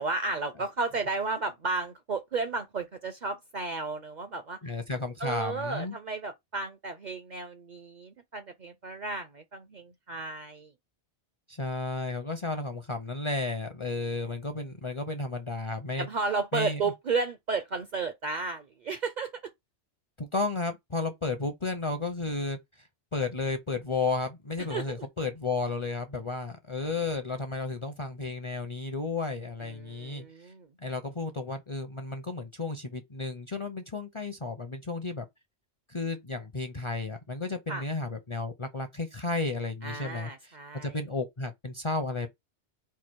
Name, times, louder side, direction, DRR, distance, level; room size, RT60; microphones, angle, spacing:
voice 1, 0.0-4.6 5.2-10.7 16.0-19.3 24.7-24.8 29.6-30.7 37.7-37.8 39.8-41.0, right 3 dB, 50° right, 0.6 m, -33 dB
voice 2, 4.6-5.9 11.5-16.1 16.5-16.8 20.2-22.6 23.1-30.5 30.8-35.2 35.9-40.5 40.8-42.3, left 3 dB, 35° left, 0.5 m, -33 dB
4.6 x 2.4 x 4.5 m
omnidirectional pair, 1.2 m